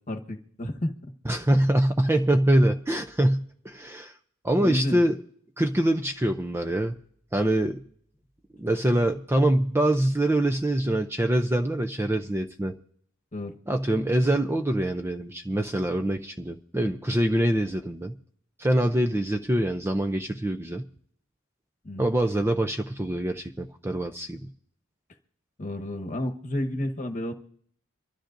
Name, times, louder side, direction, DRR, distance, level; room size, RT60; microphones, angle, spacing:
voice 1, 0.1-0.9 4.6-5.0 13.3-13.5 21.8-22.1 25.6-27.3, left 1 dB, 35° left, 4 dB, 1.2 m, -31 dB
voice 2, 1.2-4.1 4.4-5.2 5.6-6.9 7.3-7.8 8.6-12.7 13.7-18.1 18.6-20.8 22.0-24.5, right 1 dB, 10° right, 6 dB, 0.4 m, -24 dB
25.5 x 13.0 x 2.6 m, 0.63 s
head